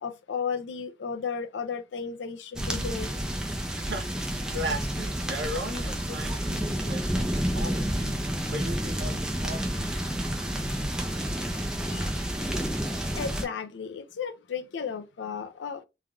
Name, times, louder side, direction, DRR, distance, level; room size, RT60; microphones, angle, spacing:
voice 1, 0.0-3.2 11.9-12.1 13.1-15.8, left 6 dB, 80° left, 0.4 m, -34 dB
sound 1, 2.6-13.5, equal, 5° right, 0.4 m, -30 dB
voice 2, 3.7-4.1 4.5-8.2 8.5-9.9, right 1 dB, 80° right, 0.7 m, -37 dB
3.3 x 2.5 x 2.3 m
head